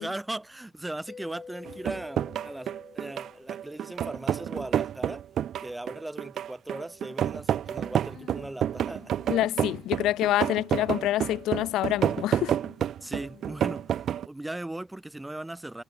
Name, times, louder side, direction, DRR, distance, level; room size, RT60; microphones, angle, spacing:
voice 1, 0.0-5.2 5.6-9.1 13.0-15.8, right 1 dB, 10° right, 3.3 m, -38 dB
Mallet percussion, 1.1-4.5, left 5 dB, 35° left, 4.8 m, -48 dB
sound 1, 1.7-14.3, right 10 dB, 70° right, 1.3 m, -29 dB
sound 2, 7.6-14.0, left 11 dB, 70° left, 7.4 m, -53 dB
voice 2, 9.3-12.6, left 14 dB, 85° left, 0.5 m, -27 dB
cardioid pair, 90°, 0 cm